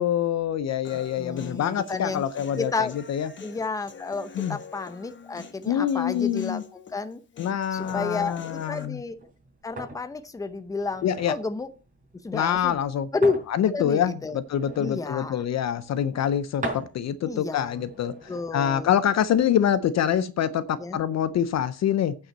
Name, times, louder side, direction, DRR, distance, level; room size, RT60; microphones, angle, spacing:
voice 1, 0.0-3.3 4.4-4.6 5.7-6.6 7.4-9.0 11.0-11.3 12.3-13.1 13.5-18.1 18.5-22.2, left 9 dB, 45° left, 15 dB, 0.6 m, -25 dB
Human voice, 0.8-8.9, left 7 dB, 30° left, 1.2 m, -46 dB
voice 2, 1.2-2.2 2.6-3.0 3.4-6.6 6.9-7.2 7.7-9.2 9.6-11.7 12.2-12.8 13.1-13.4 13.7-14.4 14.8-15.4 17.2-17.8 18.3-18.9 20.8-21.0, left 3 dB, 10° left, 10 dB, 0.7 m, -31 dB
sound 1, 7.7-19.6, right 1 dB, 20° right, 4.7 m, -42 dB
8.9 x 5.6 x 7.9 m, 0.36 s
cardioid pair, 155°, 37 cm